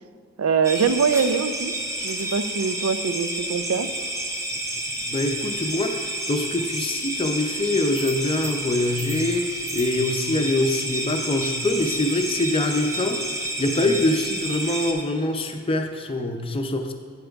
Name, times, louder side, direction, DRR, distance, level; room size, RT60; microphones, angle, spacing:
voice 1, 0.4-1.7 2.0-3.9, right 5 dB, 85° right, 10 dB, 0.5 m, -23 dB
sound 1, 0.6-14.9, right 1 dB, 15° right, 0.7 m, -30 dB
voice 2, 4.9-16.9, left 2 dB, 25° left, 6 dB, 0.5 m, -24 dB
9.0 x 7.5 x 3.5 m, 2.1 s
head